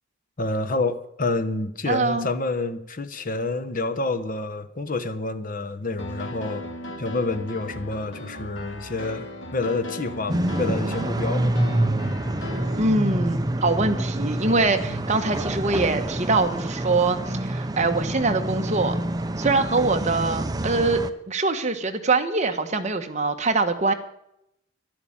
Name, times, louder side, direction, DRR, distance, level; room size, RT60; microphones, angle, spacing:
voice 1, 0.4-6.6 7.0-9.3 9.5-11.6 14.9-15.0, left 2 dB, 40° left, 10 dB, 1.0 m, -28 dB
voice 2, 1.9-2.3 12.8-19.0 19.4-23.9, right 3 dB, 35° right, 6 dB, 1.2 m, -23 dB
Piano, 6.0-12.8, left 1 dB, 65° left, 2.0 m, -37 dB
sound 1, 10.3-21.1, right 1 dB, 20° right, 0.6 m, -27 dB
11.5 x 11.0 x 8.6 m, 0.80 s
head